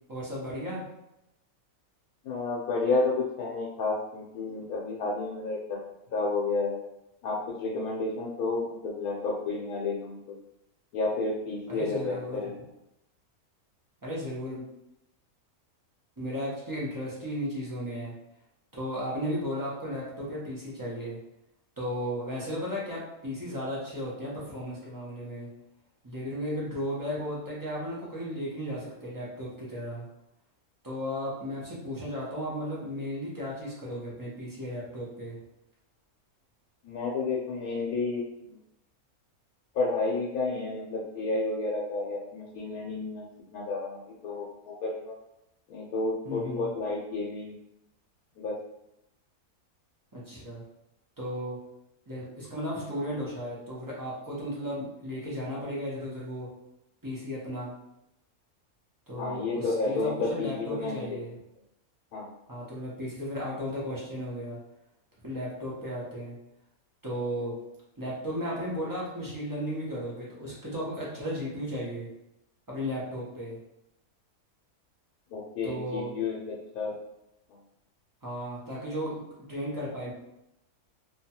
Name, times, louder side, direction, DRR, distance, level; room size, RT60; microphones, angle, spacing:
voice 1, 0.1-0.9 11.7-12.4 14.0-14.6 16.2-18.1 18.7-21.2 21.8-25.5 26.0-30.1 30.8-35.4 46.2-46.7 50.1-50.6 51.2-51.6 52.1-56.5 57.0-57.7 59.1-61.3 62.5-64.6 65.2-66.4 67.0-67.5 68.0-72.1 72.7-73.6 75.6-76.1 78.2-79.2 79.5-80.1, equal, 30° right, -7 dB, 0.3 m, -35 dB
voice 2, 2.2-5.8 6.1-6.8 7.2-10.4 10.9-12.5 36.8-38.6 39.7-43.2 43.5-45.1 45.7-47.6 48.4-48.5 59.2-61.2 62.1-62.3 75.3-76.4 76.7-77.0, left 3 dB, 85° left, -3 dB, 1.1 m, -31 dB
2.8 x 2.2 x 2.8 m, 0.87 s
omnidirectional pair, 1.5 m